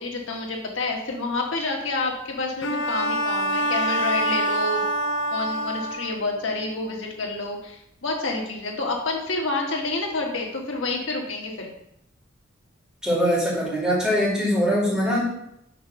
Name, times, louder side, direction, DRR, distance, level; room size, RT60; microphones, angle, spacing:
voice 1, 0.0-4.8 5.3-11.7, left 3 dB, 90° left, 0 dB, 1.4 m, -28 dB
Bowed string instrument, 2.6-6.3, right 1 dB, 65° left, 0.6 m, -25 dB
voice 2, 13.0-15.2, equal, 5° right, -7 dB, 2.4 m, -22 dB
6.0 x 3.6 x 5.6 m, 0.77 s
head